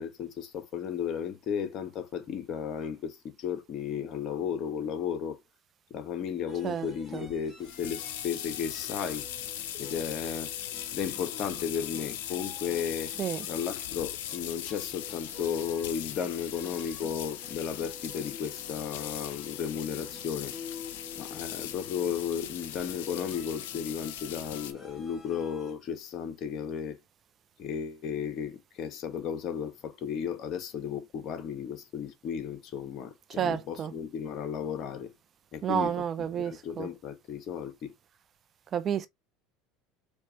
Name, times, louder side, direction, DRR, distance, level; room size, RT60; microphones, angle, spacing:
voice 1, 0.0-5.4 5.9-9.3 9.7-10.5 10.9-13.1 13.5-20.5 21.1-27.0 27.6-35.1 35.5-36.0 36.3-37.9, left 8 dB, 50° left, 1.2 m, -34 dB
sound 1, 6.5-25.7, left 4 dB, 5° left, 1.9 m, -49 dB
voice 2, 6.6-7.3 13.2-13.5 33.3-33.9 35.6-36.9 38.7-39.1, right 8 dB, 40° right, 0.5 m, -31 dB
sound 2, 7.3-24.7, left 11 dB, 80° left, 0.6 m, -39 dB
4.4 x 3.0 x 2.7 m
supercardioid pair, 95°, 0 cm